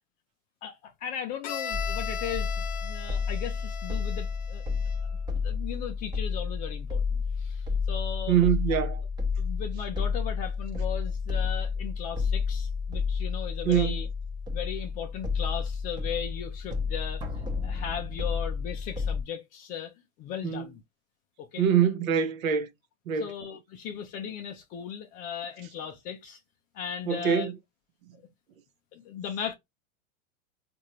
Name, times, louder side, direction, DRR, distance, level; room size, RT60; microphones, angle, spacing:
voice 1, 0.6-2.5 2.8-4.6 5.4-8.3 8.8-8.9 9.4-14.1 14.5-17.2 17.6-19.9 20.2-20.8 21.4-21.6 23.2-26.4 26.7-27.5 28.9-29.5, left 8 dB, 20° left, 0.3 m, -37 dB
Bowed string instrument, 1.4-5.2, left 6 dB, 40° left, 0.9 m, -38 dB
sound 1, 1.7-19.2, left 5 dB, 10° right, 0.7 m, -31 dB
voice 2, 8.3-9.0 13.6-14.0 20.4-20.6 21.6-22.7 23.1-23.3 27.1-27.5, right 8 dB, 75° right, 1.0 m, -24 dB
4.3 x 2.5 x 3.0 m
hypercardioid pair, 130°, 41 cm